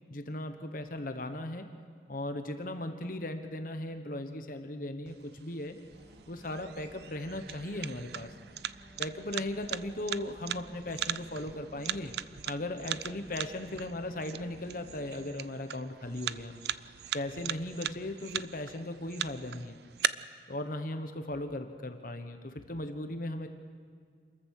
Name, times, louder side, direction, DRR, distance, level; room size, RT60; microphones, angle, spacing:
voice 1, 0.1-1.7 2.1-5.8 6.3-8.3 9.0-12.2 12.4-16.6 17.1-19.8 20.5-23.5, left 1 dB, 50° left, 7 dB, 1.2 m, -37 dB
sound 1, 5.1-20.1, right 10 dB, 60° right, 0.4 m, -39 dB
sound 2, 5.9-15.2, equal, 25° right, 2.6 m, -55 dB
27.5 x 14.5 x 6.6 m, 2.1 s
head